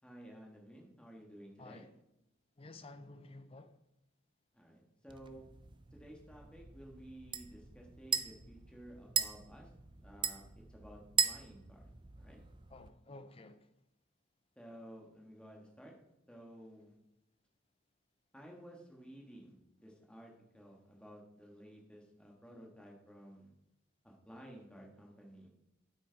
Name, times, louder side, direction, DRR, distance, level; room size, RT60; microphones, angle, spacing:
voice 1, 0.0-1.9 4.5-5.5 5.9-9.7 10.0-10.4 10.7-11.9 12.2-12.4 14.6-15.9 16.3-17.0 18.3-23.5 24.0-25.5, equal, 5° left, 1.7 m, -54 dB
voice 2, 1.6-1.9 2.6-3.7 12.7-13.7, left 2 dB, 30° left, 0.6 m, -52 dB
sound 1, 5.1-12.9, right 7 dB, 25° right, 0.5 m, -39 dB
9.2 x 8.8 x 4.1 m
head